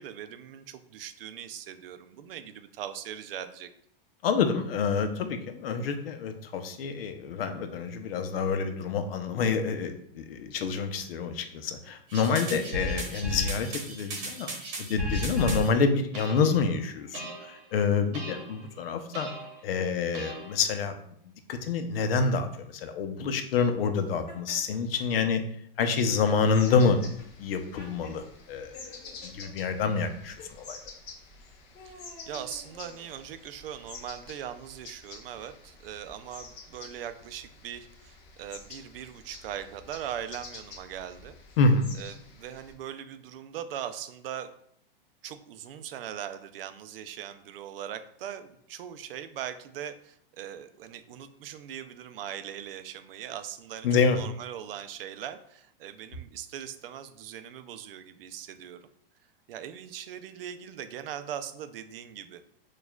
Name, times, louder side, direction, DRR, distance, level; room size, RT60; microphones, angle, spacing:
voice 1, 0.0-3.7 25.9-26.1 31.8-41.3 42.0-44.5 45.2-58.8 59.5-62.4, right 10 dB, 70° right, 10 dB, 0.5 m, -40 dB
voice 2, 4.2-14.5 14.8-19.3 19.6-20.9 21.5-25.4 25.8-27.0 27.4-29.0 29.2-30.4 30.6-30.8 41.6-41.9 53.8-54.2, left 5 dB, 75° left, 8 dB, 0.6 m, -27 dB
sound 1, 12.1-15.7 16.1-16.7 17.1-17.6 18.1-18.7 19.1-19.6 20.1-20.7, equal, 35° right, 1.0 m, -35 dB
Laughter, 24.3-25.0 25.8-28.2 28.7-29.5 30.2-30.5 31.3-33.5, left 2 dB, 45° left, 1.4 m, -50 dB
sound 2, 26.3-42.7, left 4 dB, 30° left, 0.5 m, -48 dB
6.2 x 2.4 x 2.3 m, 0.69 s
supercardioid pair, 160°, 29 cm